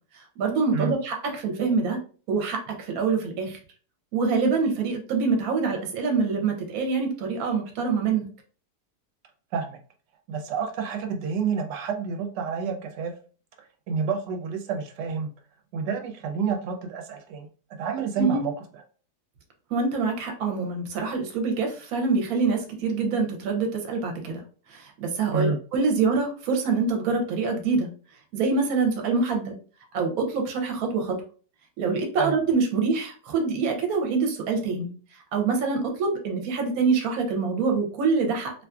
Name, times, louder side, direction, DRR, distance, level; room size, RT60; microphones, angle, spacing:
voice 1, 0.1-2.0 2.3-3.6 4.1-8.3 18.2-18.4 19.7-24.4 24.7-27.9 28.3-29.6 29.9-31.2 31.8-38.5, right 4 dB, 65° right, 3 dB, 1.1 m, -25 dB
voice 2, 10.3-13.1 13.6-15.3 15.7-17.5 17.8-18.5 25.3-25.6 32.2-32.4, right 6 dB, 85° right, 4 dB, 1.2 m, -29 dB
2.7 x 2.5 x 2.3 m, 0.39 s
omnidirectional pair, 1.8 m